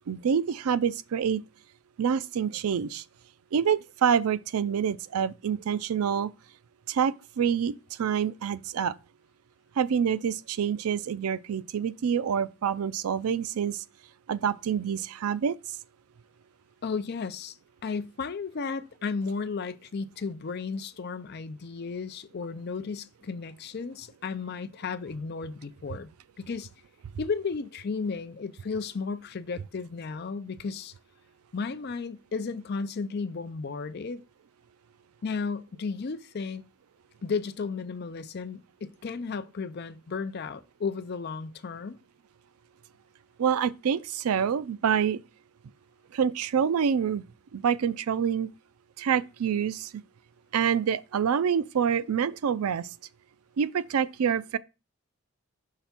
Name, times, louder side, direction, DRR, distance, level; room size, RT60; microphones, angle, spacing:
voice 1, 0.1-1.4 2.0-3.0 3.5-6.3 6.9-8.9 9.8-13.8 14.3-15.6 43.4-45.2 46.1-47.2 47.5-48.5 49.0-49.9 50.5-52.9 53.6-54.6, right 7 dB, 85° right, 0.4 m, -27 dB
voice 2, 16.8-17.6 17.8-26.1 26.4-26.7 27.2-30.9 31.5-34.2 35.2-36.6 37.2-42.0, left 5 dB, 50° left, 0.4 m, -34 dB
5.7 x 3.4 x 5.8 m
head